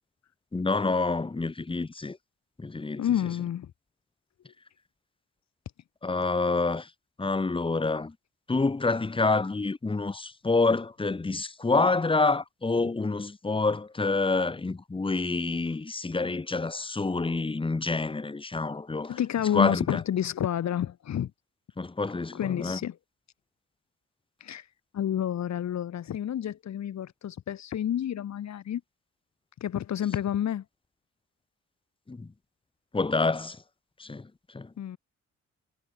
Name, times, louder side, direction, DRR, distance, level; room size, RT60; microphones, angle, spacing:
voice 1, 0.5-2.2 2.6-3.0 6.0-6.9 7.2-8.1 8.5-19.2 19.5-20.0 21.8-22.8 32.1-32.3 32.9-33.6 34.0-34.7, left 3 dB, 15° left, 1.5 m, -27 dB
voice 2, 3.0-3.7 19.1-21.3 22.3-22.9 24.4-24.6 24.9-28.8 29.6-30.6 34.8-35.0, left 10 dB, 65° left, 3.4 m, -29 dB
cardioid pair, 90°, 30 cm